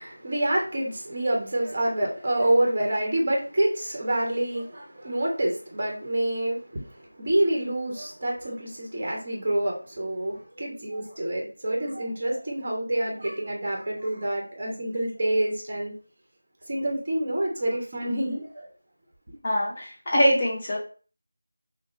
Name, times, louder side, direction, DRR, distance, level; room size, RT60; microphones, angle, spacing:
voice 1, 0.0-15.9 16.7-18.7, right 1 dB, 30° right, 1.2 m, -27 dB
voice 2, 19.4-20.8, equal, 20° left, 0.7 m, -23 dB
5.5 x 2.4 x 3.2 m
figure-of-eight pair, 175°, 0 cm